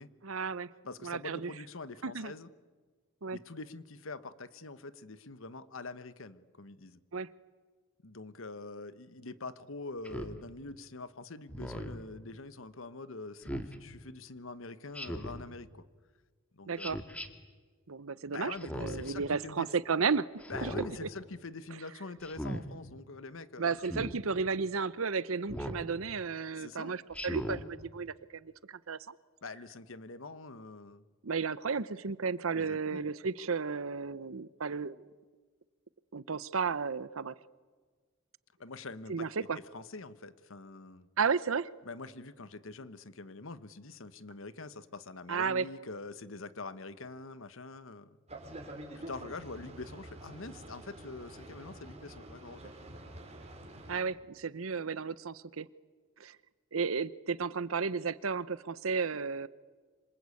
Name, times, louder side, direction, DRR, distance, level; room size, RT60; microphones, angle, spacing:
voice 1, 0.2-0.7 1.0-1.5 2.0-2.3 3.2-3.4 7.1-7.3 16.7-17.0 17.9-20.3 20.6-20.7 21.0-21.1 23.6-29.1 31.2-35.0 36.1-37.3 39.1-39.6 41.2-41.7 45.3-45.7 53.9-55.7 56.2-56.4 56.7-59.5, right 5 dB, 75° right, 18 dB, 0.8 m, -33 dB
voice 2, 0.9-2.5 3.3-7.0 8.0-15.8 16.5-17.0 18.3-19.7 20.5-23.8 26.5-26.9 29.4-31.0 32.5-33.0 38.6-39.5 39.7-41.1 41.8-48.2 48.9-52.7, left 3 dB, 70° left, 14 dB, 1.2 m, -45 dB
Speech synthesizer, 10.0-10.4 11.5-12.0 13.4-13.7 14.9-15.4 16.8-17.3 18.6-19.1 20.4-20.9 22.2-22.6 23.8-24.1 25.5-25.8 27.1-27.6, equal, 5° left, 1.9 m, -38 dB
Boat Water vehicle, 48.3-54.0, right 1 dB, 30° right, 4.7 m, -47 dB
26.5 x 26.5 x 8.5 m, 1.5 s
head